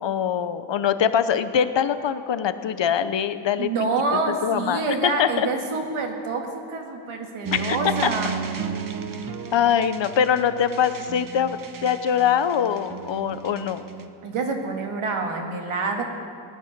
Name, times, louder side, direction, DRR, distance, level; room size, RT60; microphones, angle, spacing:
voice 1, 0.0-3.7 4.4-5.5 7.5-7.8 8.0-8.1 9.5-13.8, left 8 dB, 60° left, 12 dB, 0.9 m, -23 dB
voice 2, 3.6-8.4 14.2-16.0, right 3 dB, 85° right, 2 dB, 2.0 m, -27 dB
sound 1, 7.4-14.1, right 5 dB, 40° right, 1.0 m, -34 dB
18.5 x 10.5 x 6.7 m, 2.4 s
wide cardioid pair, 95°, 49 cm